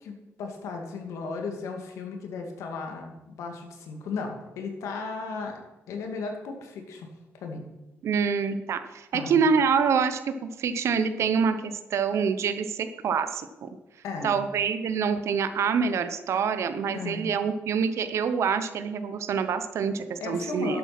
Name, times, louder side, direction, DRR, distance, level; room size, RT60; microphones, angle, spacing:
voice 1, 0.0-5.6 5.9-7.1 7.4-7.6 9.1-9.4 14.0-14.4 16.9-17.2 20.2-20.8, left 4 dB, 85° left, 3 dB, 2.3 m, -35 dB
voice 2, 8.0-13.7 14.2-20.8, right 6 dB, 65° right, 10 dB, 0.9 m, -26 dB
11.5 x 8.1 x 6.0 m, 1.1 s
cardioid pair, 85°, 5 cm